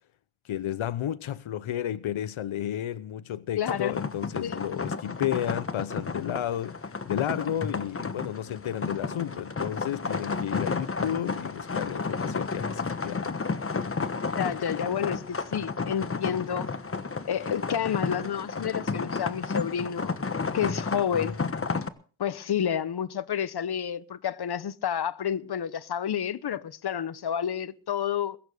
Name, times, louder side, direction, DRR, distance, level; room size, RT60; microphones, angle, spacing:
voice 1, 0.5-13.3, left 11 dB, 80° left, 0.8 m, -32 dB
voice 2, 3.6-4.0 4.4-4.6 14.3-16.7 17.3-20.1 20.5-21.4 22.2-28.4, left 9 dB, 55° left, 1.0 m, -30 dB
sound 1, 3.6-21.9, left 4 dB, 30° left, 1.3 m, -32 dB
21.0 x 9.0 x 6.5 m
wide cardioid pair, 105°, 47 cm